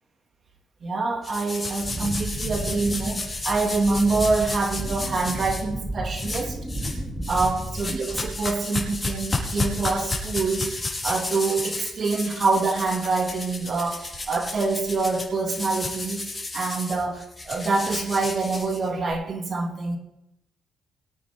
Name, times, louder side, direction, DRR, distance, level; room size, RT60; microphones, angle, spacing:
voice 1, 0.8-6.6 7.3-16.2 16.5-20.0, right 3 dB, 45° right, 4 dB, 2.5 m, -26 dB
sound 1, 1.2-5.6 6.1-7.0 7.2-19.1, left 2 dB, 20° left, 4.6 m, -32 dB
Wind, 1.8-8.6 8.9-9.4, right 1 dB, 10° right, 3.7 m, -33 dB
23.0 x 9.3 x 3.8 m, 0.84 s
cardioid pair, 90°, 0 cm